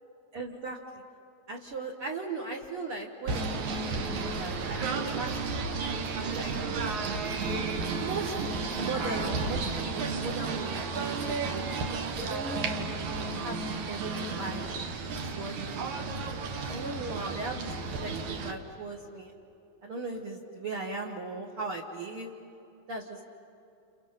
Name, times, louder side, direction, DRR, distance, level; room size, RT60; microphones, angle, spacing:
voice 1, 0.3-1.0 1.5-5.3 6.1-6.5 7.9-11.6 12.2-12.7 13.4-14.7 15.2-16.0 16.7-17.7 18.0-19.3 19.8-22.3 22.9-23.2, right 3 dB, 50° right, -1 dB, 2.1 m, -38 dB
Singing / Bird, 3.3-18.5, right 4 dB, 75° right, 2.8 m, -33 dB
29.5 x 29.5 x 5.8 m, 2.7 s
omnidirectional pair, 3.5 m